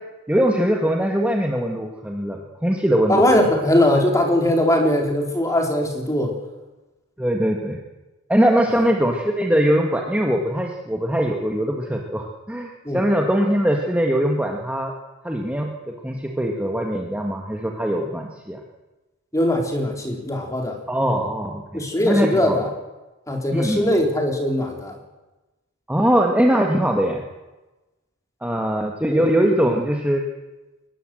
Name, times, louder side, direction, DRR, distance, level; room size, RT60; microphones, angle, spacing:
voice 1, 0.3-3.2 7.2-7.8 8.3-14.9 15.2-15.7 16.0-18.6 20.9-22.6 23.5-24.0 25.9-27.2 28.4-30.2, equal, 5° right, 1 dB, 1.8 m, -21 dB
voice 2, 3.1-6.3 12.8-13.0 19.3-20.8 21.7-22.7 23.3-25.0 29.1-29.3, left 1 dB, 15° left, 2 dB, 3.9 m, -20 dB
22.0 x 20.5 x 7.8 m, 1.1 s
head